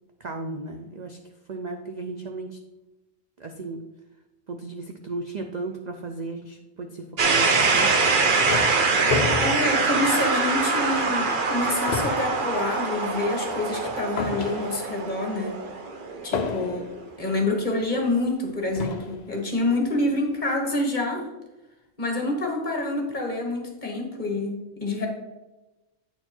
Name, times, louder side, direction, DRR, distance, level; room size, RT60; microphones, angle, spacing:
voice 1, 0.2-1.2 1.5-2.6 3.4-3.8 4.5-8.2, right 3 dB, 65° right, 4 dB, 0.4 m, -35 dB
sound 1, 7.2-17.0, right 4 dB, 45° right, 0.8 m, -24 dB
Closing & Latching Plastic Toolbox, 7.9-10.6 11.1-11.2 11.5-15.1 16.3-17.1 18.0-18.1 18.8-19.3, left 5 dB, 75° left, 0.3 m, -32 dB
voice 2, 9.4-15.6 16.2-16.9 17.2-21.3 22.0-25.1, left 2 dB, 35° left, 1 dB, 1.4 m, -27 dB
8.8 x 4.4 x 4.3 m, 1.1 s
omnidirectional pair, 1.4 m